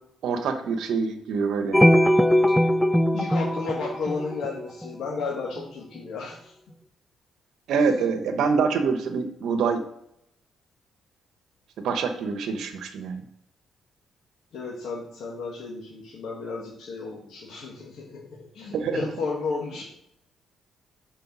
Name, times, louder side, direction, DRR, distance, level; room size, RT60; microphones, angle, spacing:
voice 1, 0.2-1.8 7.7-9.8 11.8-13.2 18.7-19.0, right 5 dB, 75° right, 7 dB, 0.9 m, -25 dB
sound 1, 1.7-4.9, equal, 5° left, 0.3 m, -20 dB
voice 2, 3.1-6.5 14.5-19.8, left 4 dB, 70° left, -5 dB, 1.5 m, -33 dB
5.3 x 4.5 x 5.9 m, 0.77 s
cardioid pair, 90°, 0 cm